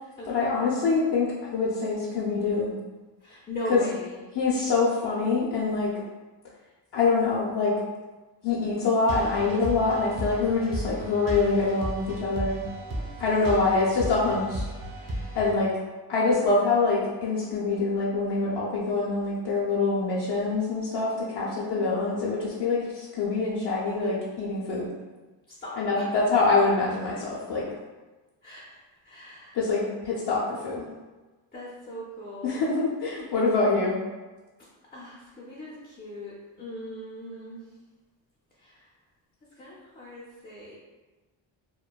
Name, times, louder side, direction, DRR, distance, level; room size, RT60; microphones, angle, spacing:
voice 1, 0.3-2.8 3.7-3.8 4.3-5.9 6.9-7.7 8.4-12.6 13.2-14.7 15.3-15.7 16.1-24.9 25.8-27.6 29.5-30.8 32.4-34.0, left 3 dB, 60° left, -7 dB, 0.7 m, -25 dB
voice 2, 3.2-4.2 13.0-13.9 14.9-15.4 16.2-16.5 21.4-22.0 25.5-26.0 28.4-29.6 31.5-32.6 34.9-37.6 38.6-38.9 39.6-40.8, left 1 dB, 20° left, -6 dB, 0.4 m, -40 dB
sound 1, 9.1-15.5, equal, 45° right, 0.7 m, -35 dB
3.0 x 2.1 x 2.2 m, 1.2 s
cardioid pair, 95°, 46 cm